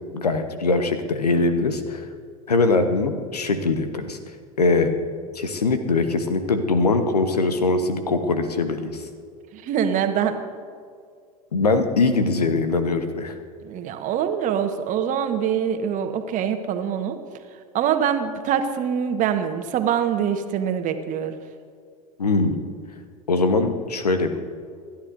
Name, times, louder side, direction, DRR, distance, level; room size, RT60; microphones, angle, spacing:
voice 1, 0.1-2.1 2.5-4.2 4.6-4.9 5.3-9.0 11.5-13.4 22.2-22.6 23.3-24.4, left 3 dB, 85° left, 8 dB, 1.1 m, -22 dB
voice 2, 9.5-10.4 13.6-17.2 17.7-21.4, right 8 dB, 40° right, 7 dB, 1.3 m, -24 dB
27.0 x 12.0 x 2.6 m, 2.1 s
figure-of-eight pair, 80°, 20 cm